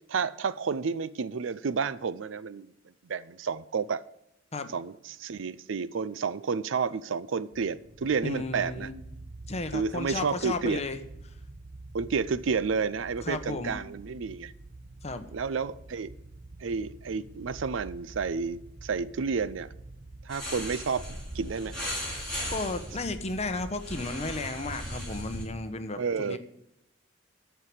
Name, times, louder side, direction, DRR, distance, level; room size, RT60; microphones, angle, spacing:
voice 1, 0.1-2.7 3.0-4.0 4.7-8.9 9.7-10.8 11.9-14.5 15.3-16.1 16.6-19.7 20.2-21.0 21.3-21.7 26.0-26.4, right 5 dB, 75° right, 0.5 m, -30 dB
sound 1, 7.5-23.7, right 2 dB, 40° right, 0.8 m, -47 dB
voice 2, 8.2-8.9 9.5-11.0 13.3-13.8 15.0-15.3 22.5-26.4, left 2 dB, 35° left, 1.0 m, -34 dB
sound 2, 20.3-25.4, equal, 5° left, 5.5 m, -37 dB
13.0 x 4.7 x 8.2 m
head